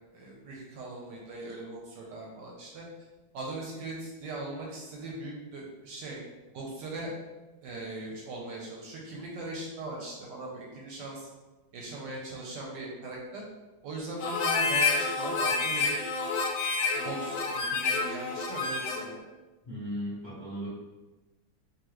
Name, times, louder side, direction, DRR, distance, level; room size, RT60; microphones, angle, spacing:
voice 1, 0.1-2.8 3.3-6.2 6.5-7.1 7.6-11.3 11.7-13.4 13.8-15.9 17.0-19.2, right 2 dB, 70° right, -2 dB, 1.2 m, -39 dB
Harmonica, 14.2-19.1, left 4 dB, 85° left, 1.4 m, -29 dB
voice 2, 19.7-20.7, equal, 30° left, -9 dB, 0.9 m, -36 dB
3.8 x 2.8 x 3.1 m, 1.2 s
omnidirectional pair, 2.1 m